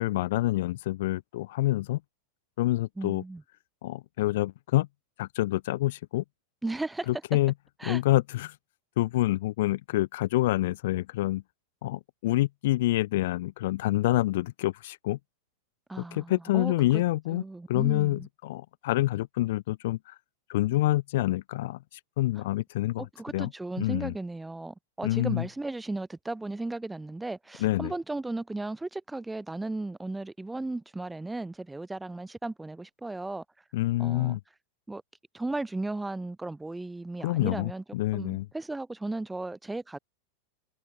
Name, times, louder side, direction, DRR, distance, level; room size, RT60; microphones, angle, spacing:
voice 1, 0.0-2.0 2.6-3.2 3.8-4.9 5.2-6.2 7.1-7.5 7.8-8.5 9.0-11.4 11.8-15.2 16.0-20.1 20.5-23.1 23.3-23.5 23.8-24.1 25.0-25.5 27.6-27.9 33.7-34.4 37.2-38.5, left 16 dB, 55° left, 2.6 m, -27 dB
voice 2, 3.0-3.4 6.6-7.1 7.8-8.0 15.9-17.0 17.3-18.3 23.0-33.4 34.0-34.4 34.9-35.0 35.3-37.8 38.1-40.0, right 2 dB, 5° right, 5.6 m, -35 dB
figure-of-eight pair, 90°, 0 cm